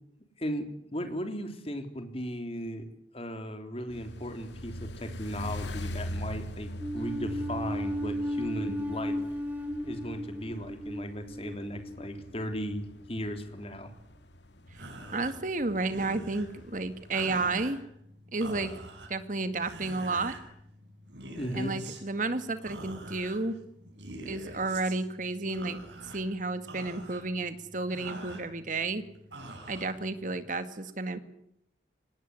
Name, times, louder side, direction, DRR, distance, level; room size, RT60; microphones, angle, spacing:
voice 1, 0.4-2.9 3.1-9.2 9.8-13.9 21.3-21.7, equal, 35° left, 7 dB, 3.4 m, -36 dB
sound 1, 3.9-17.6, left 1 dB, 75° left, 2.2 m, -43 dB
sound 2, 6.8-13.2, equal, 10° right, 1.4 m, -35 dB
sound 3, 14.7-30.6, right 2 dB, 80° right, 7.1 m, -46 dB
voice 2, 15.1-17.8 18.3-18.8 19.1-20.4 21.5-23.6 24.3-25.8 26.1-29.0 29.7-31.2, right 3 dB, 45° right, 10 dB, 2.1 m, -32 dB
25.0 x 19.5 x 10.0 m, 0.74 s
head